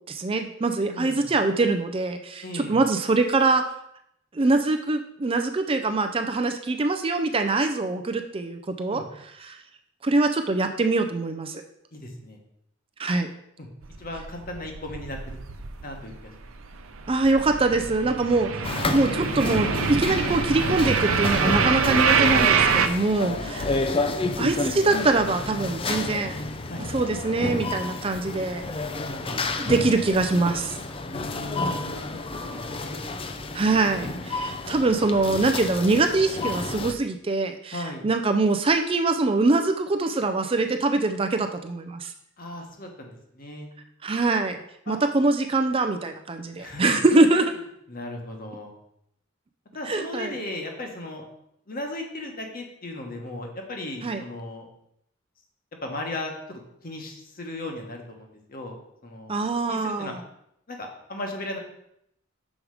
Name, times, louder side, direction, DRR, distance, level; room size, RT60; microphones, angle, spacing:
voice 1, 0.1-3.6 4.3-9.0 9.4-9.6 10.0-11.6 13.0-13.3 17.1-18.5 18.9-23.6 24.4-26.4 26.9-28.6 29.2-30.8 33.5-42.1 44.0-44.6 44.9-47.5 49.9-50.3 54.0-54.2 59.3-60.2, right 3 dB, 25° right, 7 dB, 0.4 m, -23 dB
voice 2, 0.9-1.3 2.4-2.8 8.9-9.0 11.9-12.4 13.6-13.7 14.0-15.4 15.8-16.3 23.2-23.8 26.7-26.8 28.9-29.5 31.1-33.0 37.7-38.1 42.4-43.7 44.9-45.0 46.6-46.8 47.9-48.7 49.7-51.2 51.7-54.7 55.8-58.7 59.0-59.4 59.7-60.1 60.7-61.6, left 1 dB, 45° left, 2 dB, 1.3 m, -36 dB
sound 1, 13.8-16.2 16.4-22.9, right 5 dB, 80° right, 0.6 m, -25 dB
sound 2, 18.6-36.9, left 3 dB, 25° left, 0.5 m, -31 dB
6.3 x 5.0 x 4.8 m, 0.76 s
head